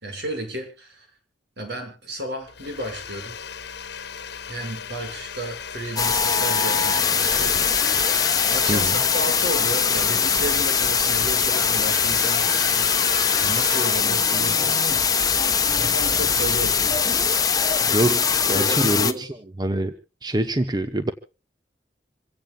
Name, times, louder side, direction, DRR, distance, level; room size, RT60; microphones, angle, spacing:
voice 1, 0.0-1.1 1.6-3.4 4.5-8.0 8.5-12.9 13.4-15.5 15.7-17.0 17.7-19.3, right 1 dB, 70° right, 5 dB, 6.7 m, -33 dB
Domestic sounds home sounds, 2.5-15.1, left 7 dB, 65° left, 1.3 m, -35 dB
sound 1, 6.0-19.1, left 6 dB, 20° left, 1.1 m, -21 dB
voice 2, 18.5-19.3 19.6-19.9 20.2-21.1, right 1 dB, 25° right, 9 dB, 1.0 m, -24 dB
27.0 x 16.5 x 2.4 m, 0.33 s
head